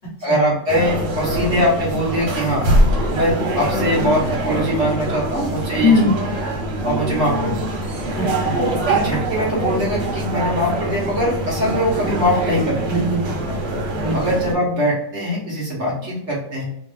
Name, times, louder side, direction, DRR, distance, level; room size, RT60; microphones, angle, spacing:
voice 1, 0.2-2.7 3.1-6.1 6.8-7.6 8.5-12.8 14.1-16.6, equal, 50° right, -5 dB, 1.1 m, -22 dB
sound 1, 0.7-14.5, right 1 dB, 85° right, 1.5 m, -23 dB
voice 2, 5.8-6.2 8.1-8.6 12.9-14.2, left 2 dB, 50° left, -6 dB, 0.8 m, -21 dB
2.9 x 2.4 x 3.2 m, 0.81 s
omnidirectional pair, 1.9 m